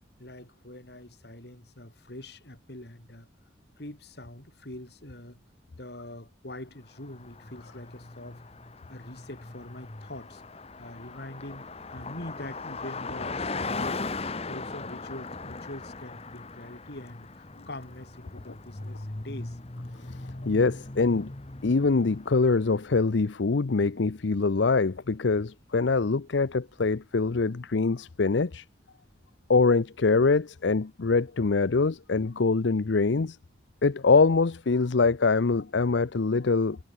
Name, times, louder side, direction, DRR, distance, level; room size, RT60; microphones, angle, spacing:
voice 1, 0.2-3.3 3.8-5.4 5.7-8.4 8.9-10.4 10.8-14.0 14.5-19.6, left 1 dB, 60° left, 3.0 m, -43 dB
Car passing by, 7.0-23.0, left 3 dB, 30° left, 1.0 m, -39 dB
voice 2, 20.4-21.3 21.6-28.6 29.5-33.4 33.8-36.8, left 4 dB, 75° left, 0.6 m, -24 dB
head